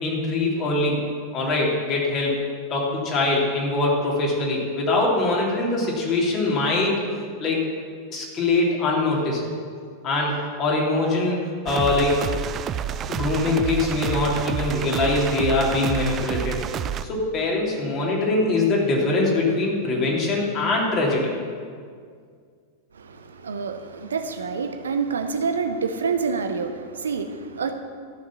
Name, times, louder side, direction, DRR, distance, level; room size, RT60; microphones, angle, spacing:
voice 1, 0.0-1.0 1.3-2.4 2.7-7.0 7.4-7.6 8.1-9.5 10.0-11.4 11.6-12.3 13.1-16.6 17.0-21.3, left 2 dB, 30° left, -3 dB, 3.2 m, -23 dB
sound 1, 11.7-17.0, right 9 dB, 30° right, 0.4 m, -29 dB
voice 2, 22.9-27.7, right 5 dB, 70° right, 7 dB, 0.8 m, -27 dB
14.0 x 6.7 x 7.1 m, 2.1 s
figure-of-eight pair, 90°, 0 cm